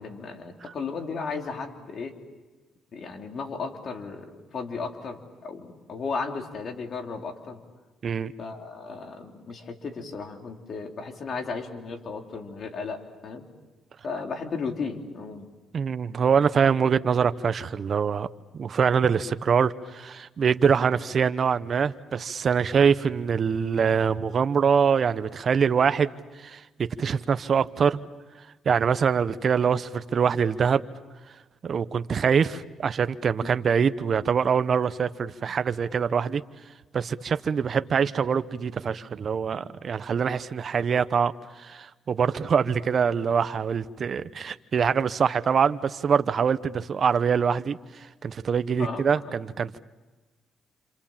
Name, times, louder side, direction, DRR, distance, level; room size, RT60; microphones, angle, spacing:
voice 1, 0.0-2.2 2.9-7.6 8.4-13.5 14.0-15.5 33.4-33.5 48.8-49.0, left 4 dB, 55° left, 3 dB, 3.5 m, -35 dB
voice 2, 15.7-18.3 18.5-26.1 26.4-26.6 27.0-28.0 28.6-30.8 31.6-36.4 36.9-41.3 41.6-49.8, right 6 dB, 50° right, 13 dB, 1.0 m, -24 dB
28.5 x 27.5 x 7.4 m, 1.2 s
cardioid pair, 90°, 0 cm